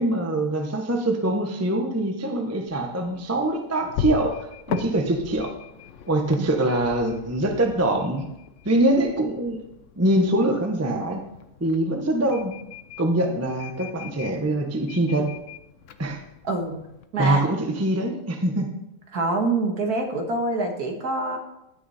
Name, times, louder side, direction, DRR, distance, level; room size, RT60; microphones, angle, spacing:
voice 1, 0.0-4.3 4.7-5.5 6.1-8.3 8.6-9.6 10.0-11.2 11.6-12.5 13.0-15.3 16.0-16.2 17.2-18.7, right 1 dB, 15° right, 3 dB, 0.5 m, -23 dB
sound 1, 2.7-17.1, left 8 dB, 85° left, 0.6 m, -39 dB
voice 2, 19.1-21.4, right 2 dB, 50° right, 3 dB, 1.9 m, -25 dB
16.0 x 6.2 x 4.2 m, 0.86 s
omnidirectional pair, 2.2 m